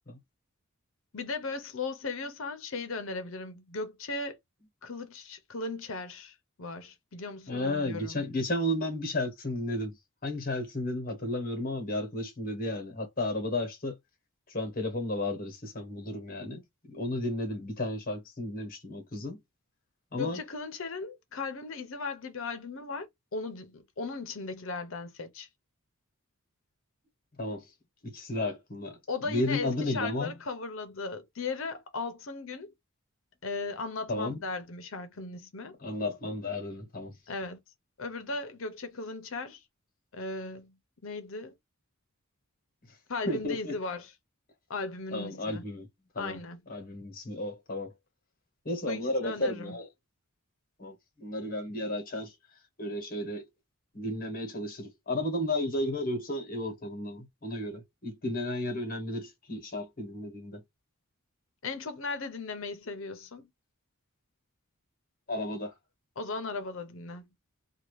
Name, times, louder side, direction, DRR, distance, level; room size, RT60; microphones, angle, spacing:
voice 1, 1.1-4.4 4.8-8.2 20.2-23.1 23.3-25.5 29.1-32.7 33.4-35.8 37.3-37.6 38.0-39.6 40.1-40.7 41.0-41.5 43.1-44.1 44.7-45.6 46.2-46.6 48.9-49.8 61.6-63.5 66.2-67.2, left 3 dB, 65° left, 0.7 m, -37 dB
voice 2, 7.5-9.9 10.2-14.0 14.5-19.4 20.1-20.4 27.4-27.6 28.0-30.3 34.1-34.4 35.8-37.1 43.3-43.8 45.1-45.9 46.1-46.4 46.7-47.9 48.6-49.9 50.8-52.3 52.8-53.4 53.9-60.6 65.3-65.7, left 1 dB, 40° left, 1.1 m, -33 dB
2.8 x 2.3 x 3.1 m
head